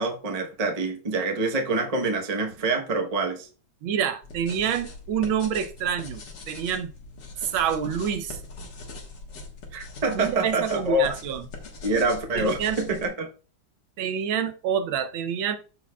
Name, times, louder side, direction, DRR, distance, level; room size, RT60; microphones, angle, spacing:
voice 1, 0.0-3.5 9.7-11.1 11.8-13.3, right 2 dB, 30° right, 0.8 m, -26 dB
voice 2, 3.8-6.9 7.4-8.4 10.1-11.5 12.3-12.8 14.0-15.6, right 8 dB, 85° right, 1.6 m, -27 dB
sound 1, 4.2-13.1, left 3 dB, 65° left, 2.1 m, -41 dB
13.5 x 4.7 x 2.3 m
omnidirectional pair, 2.1 m